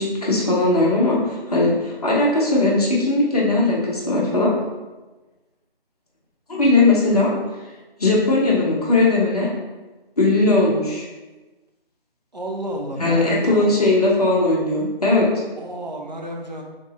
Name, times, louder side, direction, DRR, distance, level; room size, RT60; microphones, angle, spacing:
voice 1, 0.0-4.5 6.5-7.3 8.0-9.5 10.2-11.0 13.0-15.3, left 2 dB, 40° left, -5 dB, 1.0 m, -18 dB
voice 2, 12.3-13.7 15.6-16.6, right 1 dB, 45° right, 0 dB, 0.6 m, -31 dB
3.7 x 3.6 x 2.9 m, 1.2 s
figure-of-eight pair, 170°, 30 cm